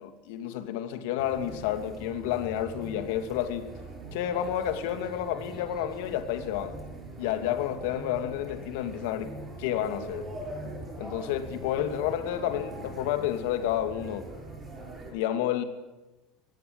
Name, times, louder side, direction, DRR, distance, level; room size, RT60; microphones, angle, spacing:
voice 1, 0.0-3.7 4.1-6.8 7.2-10.3 10.7-14.3 15.1-15.6, left 11 dB, 80° left, 2.5 m, -30 dB
sound 1, 1.2-15.1, right 2 dB, 20° right, 7.8 m, -42 dB
20.0 x 17.5 x 9.8 m
cardioid pair, 150°, 0 cm